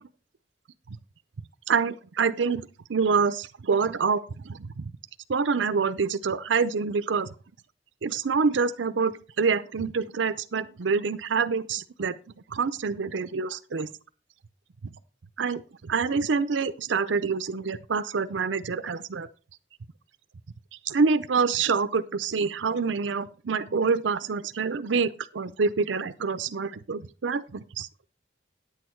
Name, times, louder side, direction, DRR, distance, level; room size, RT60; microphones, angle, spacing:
voice 1, 1.7-4.9 5.3-7.3 8.0-12.1 12.5-13.9 14.8-14.9 15.4-19.3 20.8-27.9, right 5 dB, 80° right, 13 dB, 0.6 m, -26 dB
10.0 x 8.3 x 4.5 m, 0.35 s
head